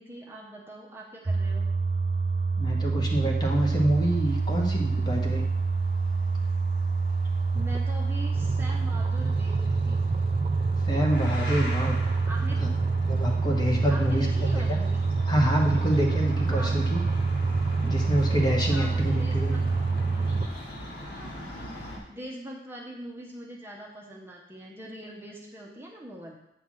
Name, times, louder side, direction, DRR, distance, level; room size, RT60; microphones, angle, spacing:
voice 1, 0.0-1.7 7.5-10.0 12.2-12.6 13.9-15.0 16.5-16.9 18.7-19.6 20.8-21.4 22.1-26.4, right 1 dB, 15° right, -2 dB, 0.8 m, -42 dB
sound 1, 1.3-20.5, right 4 dB, 30° right, 0.4 m, -26 dB
voice 2, 2.6-5.5 10.9-12.0 12.6-12.7 13.0-14.8 15.3-17.0 17.8-19.6, equal, 25° left, 0 dB, 1.1 m, -27 dB
sound 2, 3.5-22.0, left 1 dB, 65° left, 1.6 m, -42 dB
8.4 x 3.5 x 6.1 m, 0.81 s
head